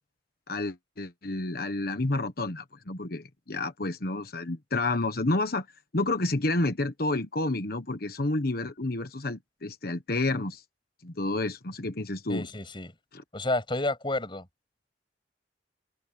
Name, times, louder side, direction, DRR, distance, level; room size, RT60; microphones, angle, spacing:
voice 1, 0.5-5.7 5.9-10.6 11.0-12.5 13.1-13.2, left 2 dB, 55° left, 1.3 m, -30 dB
voice 2, 12.3-12.9 13.3-14.5, left 2 dB, 30° left, 6.8 m, -30 dB
open air
head